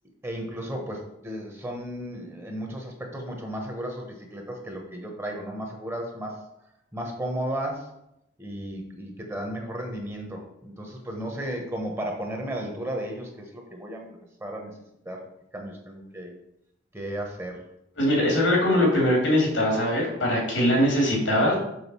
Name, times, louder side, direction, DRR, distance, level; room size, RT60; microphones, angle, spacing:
voice 1, 0.2-6.5 6.9-7.9 8.4-14.1 14.4-14.7 15.0-15.3 15.5-16.3 16.9-17.7, right 1 dB, 15° right, 1 dB, 1.1 m, -34 dB
voice 2, 18.0-21.6, left 1 dB, 90° left, -2 dB, 2.7 m, -22 dB
6.4 x 3.9 x 5.5 m, 0.80 s
head